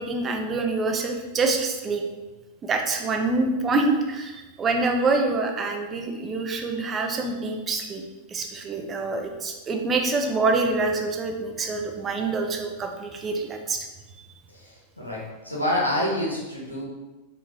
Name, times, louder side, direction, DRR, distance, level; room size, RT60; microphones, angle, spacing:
voice 1, 0.0-2.0 2.6-8.0 8.3-13.9, right 3 dB, 25° right, 4 dB, 0.5 m, -26 dB
voice 2, 14.5-16.9, left 1 dB, 85° left, -5 dB, 1.0 m, -28 dB
4.5 x 3.1 x 2.3 m, 1.2 s
figure-of-eight pair, 90°, 0 cm